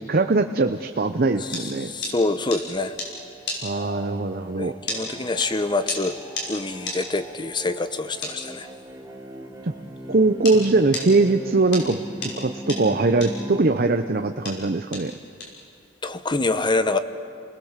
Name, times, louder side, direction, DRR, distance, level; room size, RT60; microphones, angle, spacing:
voice 1, 0.0-1.9 3.6-4.7 9.6-9.7 10.1-12.0 12.4-15.1, right 3 dB, 50° right, 7 dB, 0.7 m, -21 dB
sound 1, 0.9-10.6 10.9-16.2, left 2 dB, 60° left, 5.8 m, -34 dB
voice 2, 1.4-2.9 4.6-6.2 6.5-8.7 16.0-17.0, left 2 dB, 25° left, 11 dB, 0.9 m, -26 dB
sound 2, 2.8-13.6, right 1 dB, 15° right, 2.0 m, -40 dB
30.0 x 20.0 x 7.4 m, 2.4 s
head